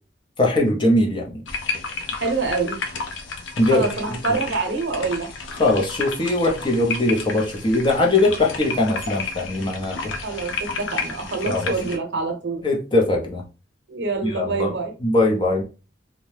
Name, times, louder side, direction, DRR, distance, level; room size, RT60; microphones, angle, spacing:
voice 1, 0.4-1.4 3.6-3.8 5.6-10.1 11.4-11.7 12.6-13.4 14.2-14.8 15.0-15.6, left 2 dB, 25° left, 0.6 m, -20 dB
sound 1, 1.5-12.0, left 4 dB, 80° left, 0.6 m, -32 dB
voice 2, 2.1-2.8 3.7-5.3 10.2-12.7 13.9-14.9, right 4 dB, 65° right, 0.7 m, -26 dB
2.7 x 2.2 x 3.2 m
head